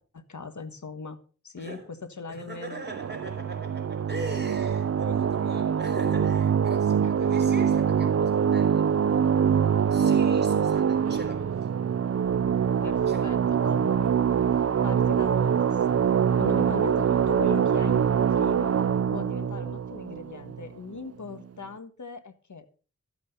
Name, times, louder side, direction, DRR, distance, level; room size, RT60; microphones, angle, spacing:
voice 1, 0.1-1.2 1.4-2.8 7.0-7.1 12.8-14.1 14.8-16.0 16.4-18.8 19.1-22.7, left 4 dB, 65° left, 1.4 m, -39 dB
voice 2, 1.6-1.9 2.3-8.9 9.9-11.7 13.1-13.3, right 1 dB, 35° right, 5.4 m, -41 dB
sound 1, 2.8-21.0, right 8 dB, 50° right, 0.5 m, -24 dB
14.5 x 8.3 x 5.4 m
wide cardioid pair, 60°, 32 cm